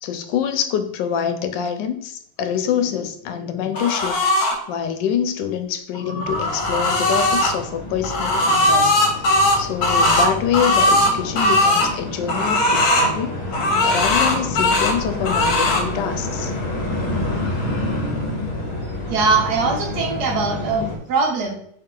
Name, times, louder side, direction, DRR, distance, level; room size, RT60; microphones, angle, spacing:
voice 1, 0.0-4.2 4.7-13.4 13.8-16.5, left 8 dB, 80° left, 8 dB, 1.3 m, -25 dB
sound 1, 3.7-4.6 5.9-7.5 8.0-11.9 12.3-13.1 13.5-15.0 15.2-15.8, left 1 dB, 65° left, 1.3 m, -18 dB
sound 2, 6.2-21.0, left 1 dB, 40° left, 1.1 m, -29 dB
voice 2, 19.1-21.5, right 4 dB, 65° right, 2 dB, 1.3 m, -21 dB
4.9 x 2.8 x 3.7 m, 0.68 s
omnidirectional pair, 1.9 m